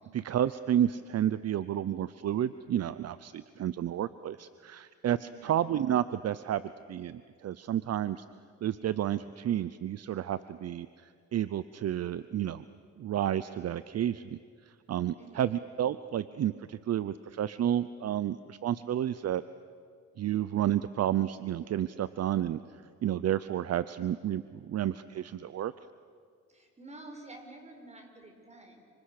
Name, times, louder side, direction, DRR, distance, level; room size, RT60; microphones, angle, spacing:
voice 1, 0.1-6.6 6.9-8.2 8.6-10.9 11.3-12.6 13.0-14.4 14.9-19.4 20.2-22.6 23.0-25.7, right 11 dB, 55° right, 14 dB, 0.8 m, -31 dB
voice 2, 5.2-5.5 15.2-15.5 26.5-28.8, right 2 dB, 20° right, 4 dB, 6.1 m, -49 dB
30.0 x 27.0 x 6.7 m, 2.1 s
cardioid pair, 90°, 30 cm